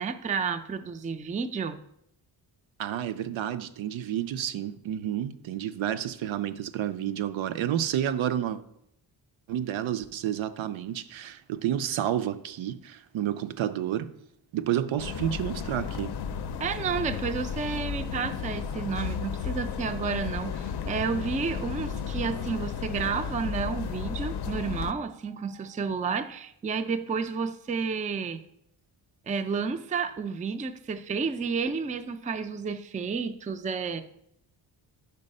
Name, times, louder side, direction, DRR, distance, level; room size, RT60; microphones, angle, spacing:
voice 1, 0.0-1.8 16.6-28.4 29.3-34.0, right 5 dB, 20° right, 0.3 m, -31 dB
voice 2, 2.8-8.6 9.5-14.1 14.5-16.1, right 11 dB, 80° right, 0.6 m, -30 dB
sound 1, 15.0-24.9, left 7 dB, 55° left, 0.5 m, -33 dB
5.4 x 4.7 x 5.3 m
cardioid pair, 100°, 46 cm